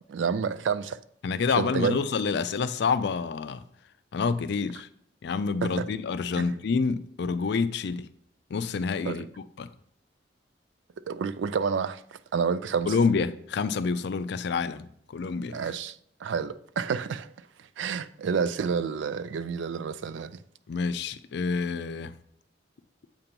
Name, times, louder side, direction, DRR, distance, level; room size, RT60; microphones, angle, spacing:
voice 1, 0.1-1.0 1.6-2.0 5.6-5.8 6.4-6.5 9.1-9.2 11.1-12.9 15.5-17.3 17.8-20.4, right 6 dB, 80° right, 0.4 m, -29 dB
voice 2, 1.2-3.6 4.1-4.9 5.2-8.1 8.5-9.3 9.6-9.7 12.9-15.6 20.7-22.1, left 5 dB, 65° left, 0.4 m, -28 dB
7.6 x 2.9 x 5.2 m
head